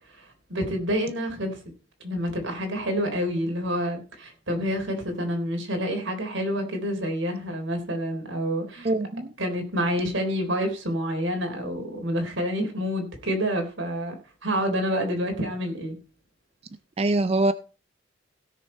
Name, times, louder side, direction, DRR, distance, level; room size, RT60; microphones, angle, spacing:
voice 1, 0.1-1.6 2.0-8.9 9.4-14.1 14.4-16.0, equal, 85° right, 3.6 m, -28 dB
voice 2, 8.8-9.3 17.0-17.5, right 2 dB, 30° right, 0.4 m, -23 dB
16.5 x 6.6 x 4.4 m
head